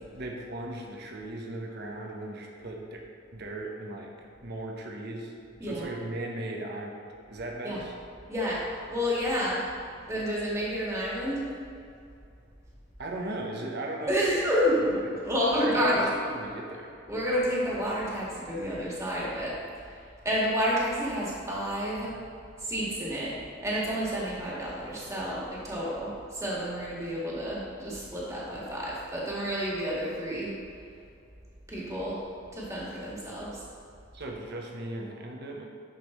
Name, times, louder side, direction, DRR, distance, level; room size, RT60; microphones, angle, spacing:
voice 1, 0.1-3.0 3.3-4.1 4.4-5.3 5.6-7.0 7.3-7.9 13.0-14.1 14.8-15.0 15.6-15.9 16.2-16.9 34.1-35.7, right 1 dB, 55° right, 0 dB, 1.1 m, -37 dB
voice 2, 8.3-9.6 10.1-11.4 14.1-14.9 15.2-16.1 17.1-19.9 20.2-22.2 22.6-30.5 31.7-32.2 32.5-33.6, equal, 15° right, -6 dB, 1.9 m, -30 dB
11.5 x 5.4 x 3.2 m, 2.4 s
head